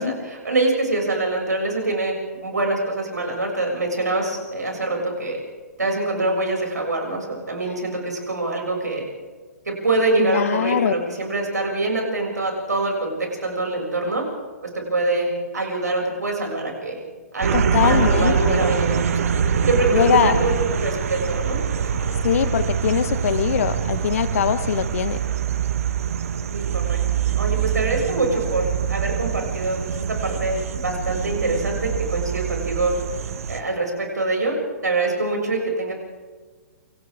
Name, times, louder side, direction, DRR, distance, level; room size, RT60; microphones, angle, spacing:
voice 1, 0.0-5.4 5.8-9.0 9.6-14.3 14.7-17.0 17.3-19.3 19.6-21.9 26.5-27.0 27.3-32.9 33.5-35.9, right 2 dB, 75° right, 0 dB, 7.3 m, -24 dB
voice 2, 10.3-10.9 17.5-18.6 19.9-20.3 22.2-25.2, left 8 dB, 55° left, 11 dB, 1.5 m, -22 dB
sound 1, 17.4-33.6, right 7 dB, 55° right, 1.4 m, -24 dB
29.0 x 25.5 x 3.8 m, 1.5 s
figure-of-eight pair, 120°, 9 cm